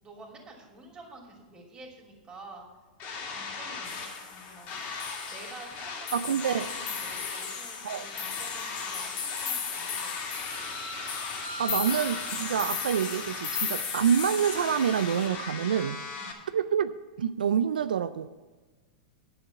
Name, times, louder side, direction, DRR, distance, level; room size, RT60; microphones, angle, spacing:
voice 1, 0.0-2.7 3.0-4.8 5.3-10.3 16.1-16.5, right 2 dB, 20° right, 2.8 m, -49 dB
sound 1, 3.0-16.3, left 4 dB, 40° left, 2.4 m, -38 dB
sound 2, 3.8-4.6 4.9-5.8 6.1-15.3, left 6 dB, 75° left, 1.9 m, -37 dB
voice 2, 6.1-6.7 7.8-8.1 11.6-16.0 16.5-18.3, right 8 dB, 90° right, 0.4 m, -27 dB
9.8 x 7.2 x 7.0 m
hypercardioid pair, 120°, 5 cm